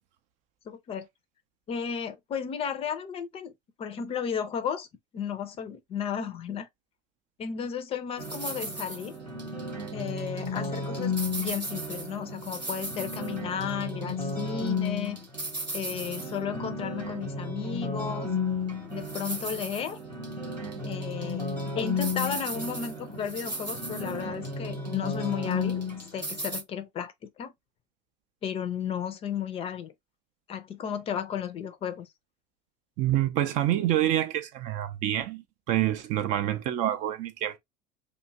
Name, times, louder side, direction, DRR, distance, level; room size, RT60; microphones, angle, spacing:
voice 1, 0.7-1.1 1.7-3.5 3.8-4.9 5.1-6.7 7.4-9.2 9.9-15.2 15.7-18.3 18.9-20.0 20.8-21.5 21.8-25.8 26.1-27.5 28.4-29.9 30.5-32.1, left 7 dB, 30° left, 0.5 m, -34 dB
sound 1, 8.2-26.6, left 2 dB, 90° right, 1.0 m, -33 dB
voice 2, 33.0-35.4 35.7-37.6, right 12 dB, 35° right, 0.4 m, -27 dB
2.6 x 2.3 x 2.6 m
figure-of-eight pair, 70°, 21 cm